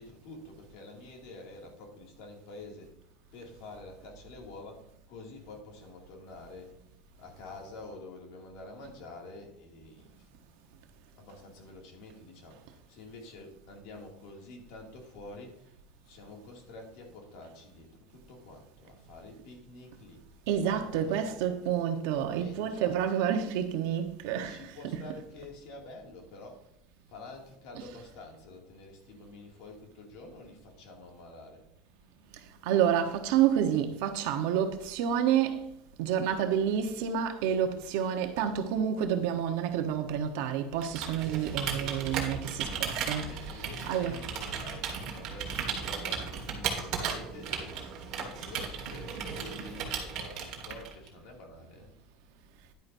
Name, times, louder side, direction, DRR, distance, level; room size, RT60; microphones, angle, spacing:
voice 1, 0.0-2.9 3.3-6.8 7.2-10.3 10.6-10.7 11.2-15.7 16.0-20.2 20.6-21.5 22.4-23.0 24.4-26.6 27.1-31.7 43.2-51.9, left 2 dB, 55° left, 2.5 m, -48 dB
voice 2, 20.5-25.2 27.7-28.0 32.6-35.7 36.0-44.3, right 9 dB, 65° right, 1.1 m, -29 dB
Computer keyboard, 40.8-51.1, right 6 dB, 40° right, 1.8 m, -36 dB
10.5 x 9.6 x 2.7 m
cardioid pair, 180°, 0 cm